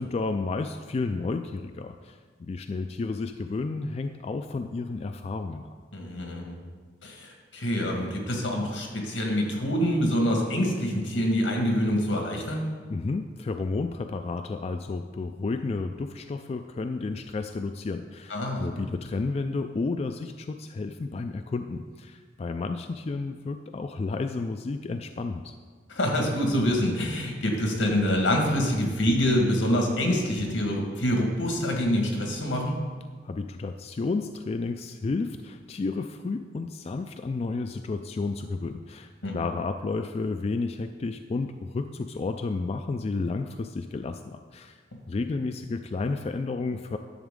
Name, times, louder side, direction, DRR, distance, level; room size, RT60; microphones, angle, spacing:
voice 1, 0.0-5.7 12.9-25.5 33.2-44.8 45.1-47.0, left 3 dB, 35° left, 7 dB, 0.3 m, -31 dB
voice 2, 5.9-6.6 7.0-12.7 18.3-18.7 25.9-32.8 39.2-39.4, equal, 85° left, 1 dB, 1.7 m, -26 dB
11.0 x 7.0 x 3.7 m, 1.5 s
head